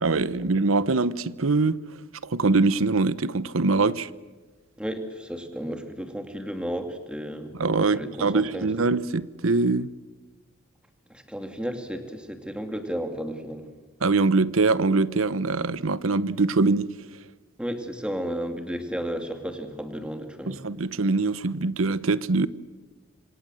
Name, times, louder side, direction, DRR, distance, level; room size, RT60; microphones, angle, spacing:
voice 1, 0.0-1.8 2.2-4.1 7.5-9.9 14.0-16.9 20.5-22.5, right 3 dB, 90° right, 0.9 m, -23 dB
voice 2, 4.8-7.5 7.9-8.7 11.1-13.7 17.6-20.6, equal, 5° right, 2.4 m, -33 dB
27.0 x 25.5 x 7.6 m
head